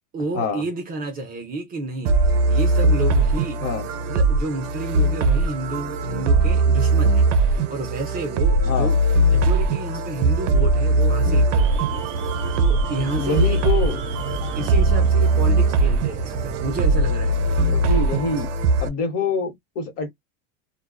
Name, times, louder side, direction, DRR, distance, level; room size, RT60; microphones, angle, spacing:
voice 1, 0.1-2.2 2.5-3.6 4.1-12.0 12.3-13.6 14.6-17.4, right 2 dB, 25° right, 0.5 m, -31 dB
sound 1, 2.1-18.9, right 2 dB, 70° right, 0.7 m, -20 dB
Alarm, 11.6-18.5, right 2 dB, 45° right, 1.1 m, -32 dB
voice 2, 13.2-14.0 17.6-18.5 18.8-20.1, left 4 dB, 40° left, 1.0 m, -25 dB
2.5 x 2.2 x 2.3 m
supercardioid pair, 155°, 37 cm